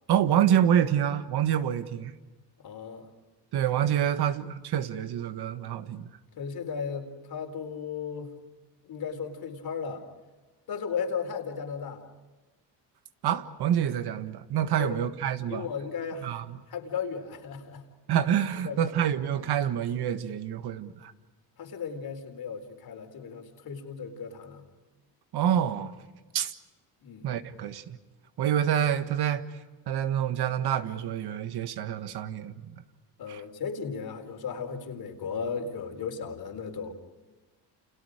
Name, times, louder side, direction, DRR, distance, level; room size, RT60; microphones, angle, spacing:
voice 1, 0.1-2.1 3.5-6.1 13.2-15.7 16.2-16.4 18.1-21.1 25.3-25.9 26.3-26.5 27.2-28.0 28.4-29.5 29.9-32.7 33.3-33.4, right 9 dB, 65° right, 1.7 m, -27 dB
voice 2, 2.6-3.1 6.4-8.3 8.8-10.0 10.7-12.0 14.8-15.0 15.4-16.4 16.7-17.8 18.6-19.0 21.6-24.6 27.0-27.3 33.2-36.9, left 6 dB, 60° left, 4.3 m, -35 dB
30.0 x 28.5 x 5.1 m
cardioid pair, 95°, 42 cm